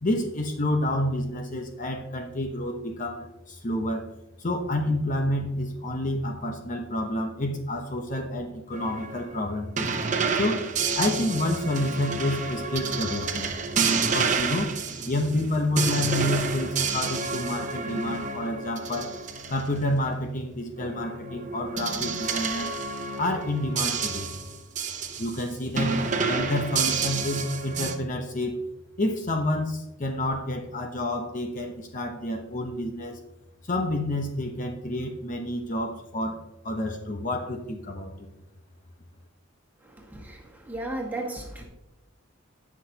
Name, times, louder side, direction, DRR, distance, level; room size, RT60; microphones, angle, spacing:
voice 1, 0.0-9.9 10.3-10.7 11.0-13.5 14.0-14.7 15.1-19.2 19.5-22.7 23.2-24.3 25.2-28.6 29.0-33.2 33.6-38.3, left 1 dB, 40° left, 3 dB, 0.9 m, -29 dB
sound 1, 8.7-19.7 20.8-25.4 25.8-27.9, right 5 dB, 35° right, 0.8 m, -29 dB
voice 2, 40.0-41.6, right 2 dB, 10° right, 0 dB, 1.7 m, -35 dB
18.0 x 6.0 x 2.9 m, 0.93 s
head